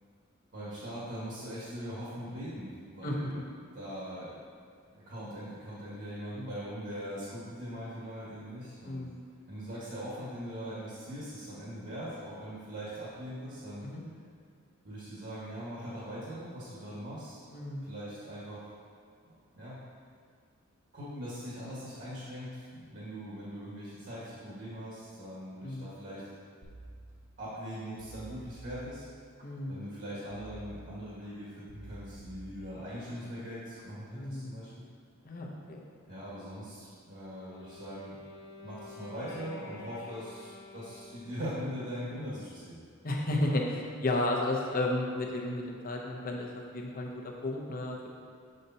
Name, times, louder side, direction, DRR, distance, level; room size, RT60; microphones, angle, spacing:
voice 1, 0.5-3.4 3.7-4.3 4.9-9.1 9.5-13.8 14.8-17.5 17.8-18.7 19.2-19.8 20.9-26.3 27.4-29.1 29.7-34.8 36.1-38.2 38.6-42.8, equal, 55° right, -9 dB, 1.6 m, -41 dB
voice 2, 8.8-9.3 13.8-14.0 17.5-17.9 25.6-25.9 29.4-29.8 34.1-34.6 35.2-35.8 43.0-48.1, left 1 dB, 40° left, 0 dB, 0.8 m, -33 dB
sound 1, 26.6-27.6 28.0-29.4 30.3-31.3 31.7-33.1 33.5-33.9, right 2 dB, 40° right, 0.9 m, -50 dB
Wind instrument woodwind instrument, 37.2-41.8, left 2 dB, 60° left, 1.1 m, -49 dB
6.5 x 6.4 x 2.8 m, 2.2 s
head